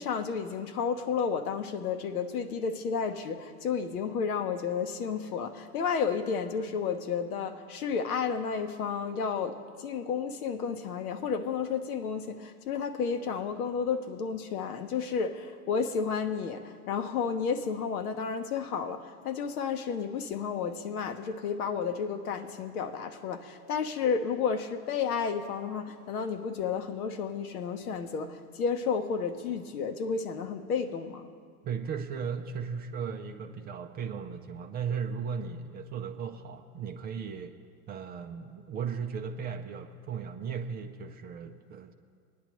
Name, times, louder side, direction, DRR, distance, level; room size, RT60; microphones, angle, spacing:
voice 1, 0.0-31.3, left 6 dB, 70° left, 1.0 m, -32 dB
voice 2, 31.6-37.6 37.9-41.9, right 6 dB, 20° right, 0.4 m, -36 dB
20.0 x 10.5 x 3.0 m
hypercardioid pair, 95°, 46 cm